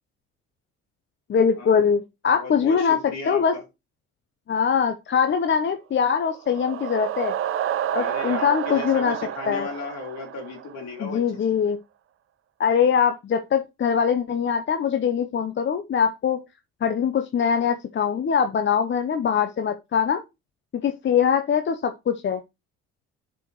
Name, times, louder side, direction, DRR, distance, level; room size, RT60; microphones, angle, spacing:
voice 1, 1.3-3.6 4.5-7.3 7.9-9.2 9.5-9.7 11.0-11.8 12.6-16.4 16.8-20.2 20.7-22.4, left 7 dB, 40° left, 0.8 m, -22 dB
voice 2, 2.3-3.6 7.9-11.4, left 4 dB, 65° left, 2.8 m, -36 dB
sound 1, 6.1-11.0, right 10 dB, 45° right, 0.6 m, -30 dB
10.5 x 4.9 x 3.0 m
supercardioid pair, 70°, 29 cm